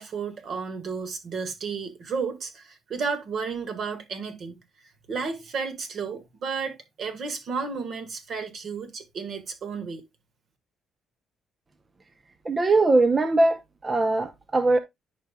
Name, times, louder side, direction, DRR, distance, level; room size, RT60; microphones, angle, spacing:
voice 1, 0.0-4.6 5.1-10.0, right 5 dB, 60° right, 1.7 m, -32 dB
voice 2, 12.5-14.8, right 2 dB, 30° right, 0.6 m, -21 dB
10.5 x 5.4 x 2.3 m
cardioid pair, 90°, 0 cm